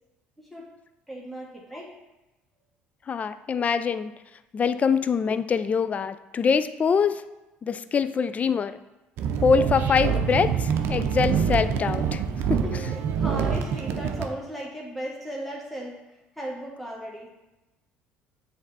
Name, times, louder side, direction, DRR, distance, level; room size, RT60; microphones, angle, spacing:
voice 1, 1.1-1.9 12.6-16.0 16.4-17.3, equal, ahead, -3 dB, 1.4 m, -36 dB
voice 2, 3.1-4.1 4.5-7.2 7.6-8.8 9.4-12.2 12.5-12.6, left 6 dB, 35° left, 13 dB, 0.3 m, -24 dB
sound 1, 9.2-14.3, right 7 dB, 65° right, 0.6 m, -26 dB
7.3 x 3.4 x 4.0 m, 1.0 s
supercardioid pair, 75°, 4 cm